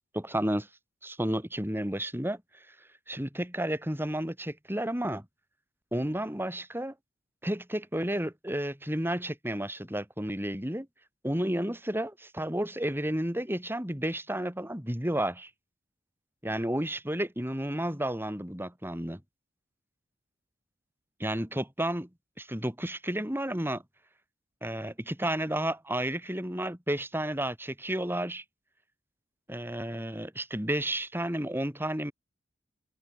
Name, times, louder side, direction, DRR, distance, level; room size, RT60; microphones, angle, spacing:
voice 1, 0.1-0.7 1.0-2.4 3.1-5.2 5.9-6.9 7.4-10.9 11.2-15.5 16.4-19.2 21.2-22.1 22.4-23.8 24.6-28.4 29.5-32.1, right 1 dB, 10° right, 6.7 m, -31 dB
head